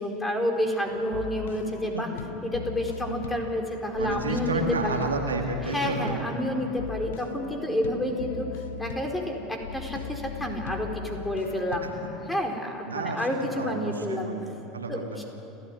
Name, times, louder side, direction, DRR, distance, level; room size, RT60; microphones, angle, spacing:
voice 1, 0.0-2.1 2.4-5.0 5.6-8.5 8.8-11.9 12.3-14.3 14.9-15.2, left 1 dB, 10° left, 2 dB, 4.4 m, -29 dB
sound 1, 0.8-12.3, left 8 dB, 70° left, 1.1 m, -39 dB
voice 2, 1.6-2.0 4.0-6.3 11.8-11.9 12.9-13.2 13.6-15.2, right 3 dB, 80° right, 3 dB, 2.2 m, -31 dB
29.0 x 14.0 x 9.5 m, 2.9 s
figure-of-eight pair, 70°, 0 cm